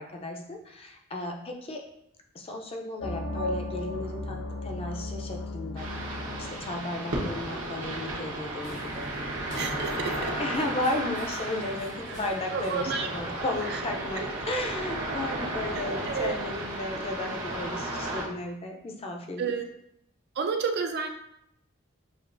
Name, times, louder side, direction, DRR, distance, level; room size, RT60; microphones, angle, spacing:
voice 1, 0.0-1.8 2.3-5.9 6.4-19.5, left 2 dB, 30° left, 2 dB, 0.5 m, -34 dB
sound 1, 3.0-10.4, left 2 dB, 80° left, 0.5 m, -38 dB
sound 2, 5.8-18.2, right 1 dB, 80° right, 1.0 m, -34 dB
sound 3, 8.6-13.6, equal, 60° left, 0.9 m, -49 dB
voice 2, 9.6-10.3 12.5-13.1 13.7-13.8 14.2-14.3 16.1-16.3 19.4-19.6 20.4-21.1, right 5 dB, 50° right, 4 dB, 0.4 m, -30 dB
6.5 x 2.4 x 2.5 m, 0.76 s
head